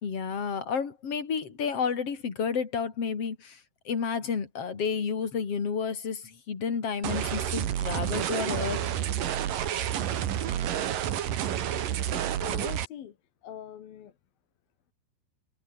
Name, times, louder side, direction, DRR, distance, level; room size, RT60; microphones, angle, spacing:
voice 1, 0.0-3.6 3.9-8.8, left 6 dB, 35° left, 3.7 m, -31 dB
sound 1, 7.0-12.8, right 10 dB, 55° right, 3.0 m, -29 dB
voice 2, 12.1-13.2 13.4-14.1, left 10 dB, 60° left, 3.3 m, -42 dB
omnidirectional pair, 5.2 m